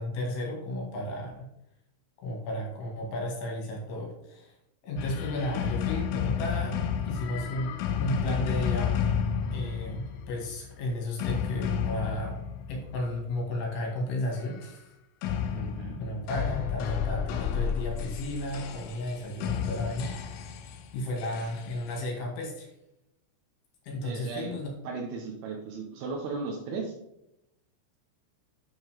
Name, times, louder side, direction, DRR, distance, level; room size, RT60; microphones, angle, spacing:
voice 1, 0.0-1.5 2.2-4.5 4.8-6.8 7.0-9.0 9.5-12.3 12.7-14.9 15.3-15.6 16.0-22.7 23.8-24.7, left 1 dB, 60° left, -1 dB, 3.6 m, -34 dB
sound 1, 5.0-13.4 15.2-22.0, left 7 dB, 85° left, 3.3 m, -31 dB
voice 2, 15.5-16.0 24.0-24.5 24.8-26.9, right 4 dB, 85° right, 0 dB, 2.2 m, -36 dB
9.5 x 6.6 x 3.4 m, 0.83 s
omnidirectional pair, 5.9 m